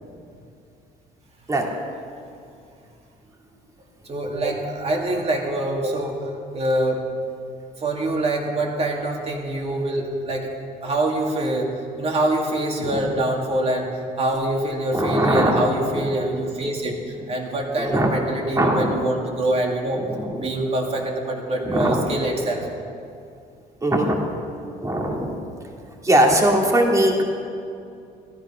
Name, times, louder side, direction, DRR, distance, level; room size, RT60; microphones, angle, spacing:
voice 1, 4.0-6.2 6.5-7.0 7.8-10.5 10.8-20.0 20.4-22.7, right 1 dB, 35° right, 0 dB, 2.5 m, -25 dB
voice 2, 14.9-15.7 15.9-16.0 17.8-18.1 18.6-19.0 20.1-20.5 21.6-22.0 23.8-24.2 24.8-25.3 26.0-27.2, right 1 dB, 20° right, 0 dB, 2.2 m, -20 dB
13.5 x 13.0 x 5.7 m, 2.5 s
cardioid pair, 110°, 17 cm